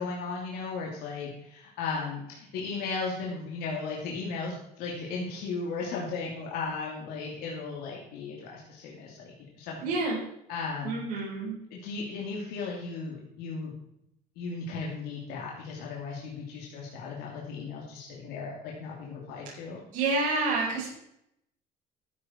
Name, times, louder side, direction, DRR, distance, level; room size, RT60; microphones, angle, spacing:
voice 1, 0.0-9.8 10.5-11.0 11.7-13.7 14.4-19.8, left 4 dB, 85° left, -2 dB, 2.8 m, -36 dB
voice 2, 9.8-10.2 10.8-11.6 19.9-20.9, right 3 dB, 55° right, -5 dB, 5.0 m, -28 dB
14.0 x 8.8 x 4.4 m, 0.78 s
cardioid pair, 150°, 16 cm